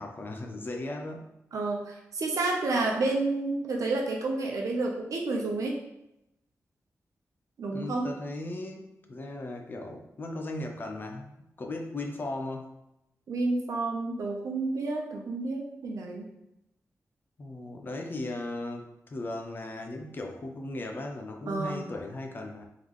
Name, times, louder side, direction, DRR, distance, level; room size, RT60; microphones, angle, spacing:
voice 1, 0.0-1.3 7.7-12.7 17.4-22.6, left 2 dB, 40° left, 3 dB, 0.6 m, -37 dB
voice 2, 1.5-5.8 7.6-8.1 13.3-16.3 21.5-21.8, right 3 dB, 80° right, 0 dB, 0.8 m, -30 dB
3.7 x 3.7 x 3.1 m, 0.85 s
wide cardioid pair, 160°, 6 cm